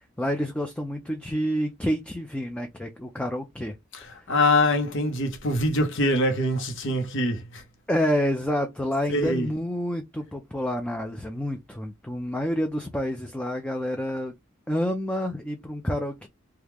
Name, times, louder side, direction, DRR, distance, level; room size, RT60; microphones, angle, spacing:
voice 1, 0.2-3.8 4.2-4.3 7.9-14.3 14.7-16.3, equal, 5° left, 0.4 m, -28 dB
voice 2, 4.3-7.6 9.1-9.5, left 1 dB, 65° left, 0.9 m, -24 dB
3.0 x 2.3 x 3.4 m
head